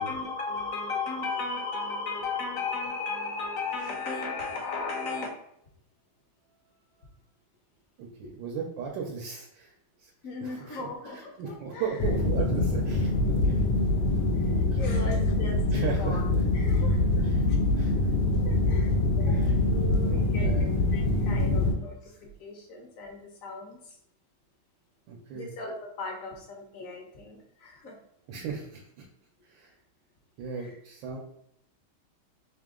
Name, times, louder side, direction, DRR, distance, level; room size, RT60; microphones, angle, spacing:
voice 1, 0.0-5.3 10.2-12.0 14.3-17.0 17.5-17.6 18.4-20.5 20.9-24.0 25.3-28.0 30.5-30.8, left 3 dB, 55° left, 1 dB, 1.0 m, -36 dB
voice 2, 8.0-9.7 10.0-10.1 10.4-13.6 14.7-14.8 15.7-16.2 17.2-17.4 17.7-18.1 19.3-19.5 20.0-20.8 25.1-25.5 28.3-29.1 29.4-29.7 30.4-31.2, right 6 dB, 70° right, 0 dB, 1.3 m, -37 dB
sound 1, 12.0-21.7, left 2 dB, 90° left, 1.5 m, -24 dB
3.6 x 2.8 x 3.6 m, 0.75 s
omnidirectional pair, 2.3 m